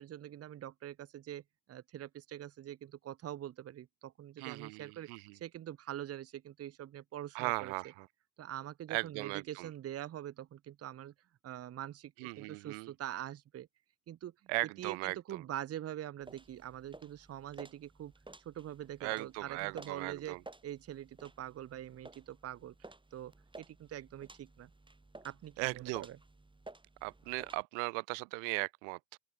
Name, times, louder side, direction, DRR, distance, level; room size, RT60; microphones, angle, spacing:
voice 1, 0.0-1.4 1.7-7.7 8.4-11.1 11.4-13.7 14.1-14.5 14.8-18.1 18.4-20.4 20.6-22.7 23.1-24.7 25.2-26.2, right 12 dB, 30° right, 0.7 m, -44 dB
voice 2, 4.4-5.3 7.3-8.1 8.9-9.7 12.2-12.9 14.5-15.4 19.0-20.4 25.6-26.1 27.0-29.0, right 40 dB or more, 80° right, 0.7 m, -38 dB
sound 1, 16.2-27.6, right 2 dB, 10° right, 4.1 m, -55 dB
open air
supercardioid pair, 105°, 47 cm